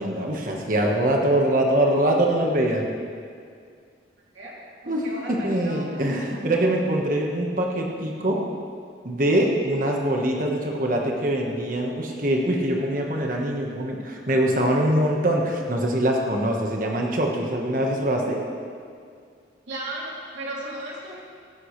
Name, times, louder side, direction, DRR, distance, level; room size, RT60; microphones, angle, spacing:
voice 1, 0.0-2.8 4.9-8.5 9.0-18.4, right 1 dB, 45° right, 0 dB, 1.4 m, -23 dB
voice 2, 4.8-6.0 19.7-21.2, right 1 dB, 90° right, -5 dB, 3.0 m, -35 dB
16.5 x 11.0 x 3.3 m, 2.2 s
head